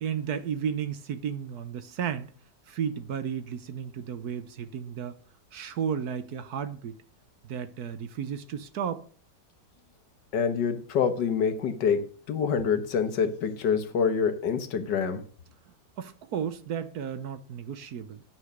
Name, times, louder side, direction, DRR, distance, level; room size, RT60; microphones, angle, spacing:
voice 1, 0.0-2.3 2.7-5.2 5.5-7.0 7.4-9.0 16.0-18.2, right 8 dB, 65° right, 1.2 m, -33 dB
voice 2, 10.3-15.2, left 6 dB, 70° left, 1.8 m, -26 dB
9.6 x 6.1 x 6.6 m
omnidirectional pair, 1.9 m